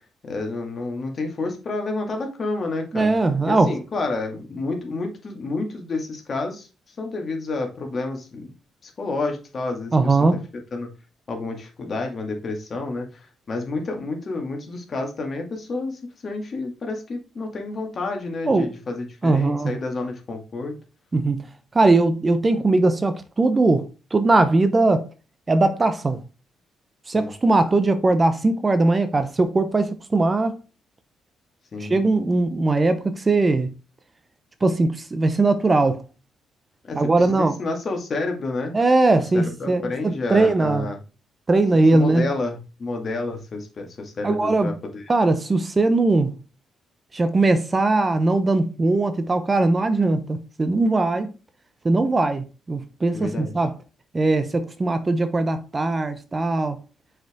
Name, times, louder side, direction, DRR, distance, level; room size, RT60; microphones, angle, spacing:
voice 1, 0.2-3.1 3.5-6.7 7.0-8.5 8.8-10.2 10.7-10.9 11.3-20.7 27.1-27.3 31.7-32.1 36.8-37.0 37.3-38.8 39.3-41.0 41.7-45.0 53.1-53.5, left 3 dB, 45° left, 2.2 m, -29 dB
voice 2, 2.9-3.8 9.9-10.4 18.5-18.7 19.2-19.8 21.1-21.5 21.7-25.1 25.5-26.2 27.1-30.6 31.8-33.7 34.6-36.0 37.0-37.6 38.7-40.9 41.5-42.3 44.2-44.7 45.1-46.4 47.1-51.3 51.8-53.7 54.1-56.8, right 2 dB, 25° right, 0.8 m, -20 dB
6.3 x 4.9 x 3.7 m
cardioid pair, 90°, 0 cm